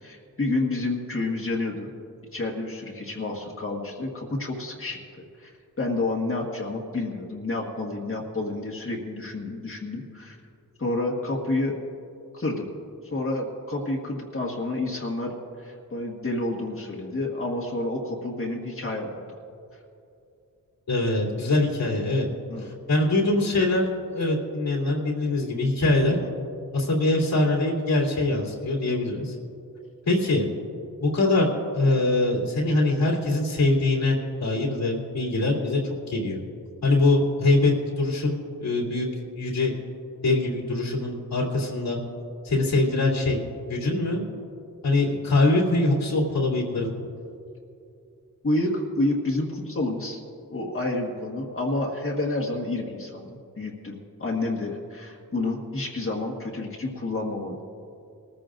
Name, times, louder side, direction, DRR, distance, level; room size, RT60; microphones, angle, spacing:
voice 1, 0.0-1.9 2.3-5.5 5.8-10.4 10.8-11.8 12.3-12.7 13.1-19.2 22.5-22.7 26.2-26.3 28.6-28.7 48.4-50.2 50.5-57.6, left 2 dB, 40° left, -2 dB, 1.6 m, -29 dB
voice 2, 20.9-22.3 22.6-26.2 26.7-29.3 30.0-30.5 31.0-35.8 36.1-36.4 36.8-39.1 39.3-39.7 40.2-42.0 42.4-43.4 43.7-44.3 44.8-46.9, left 2 dB, 85° left, -5 dB, 3.0 m, -23 dB
21.5 x 14.5 x 2.5 m, 2.6 s
wide cardioid pair, 85°, 34 cm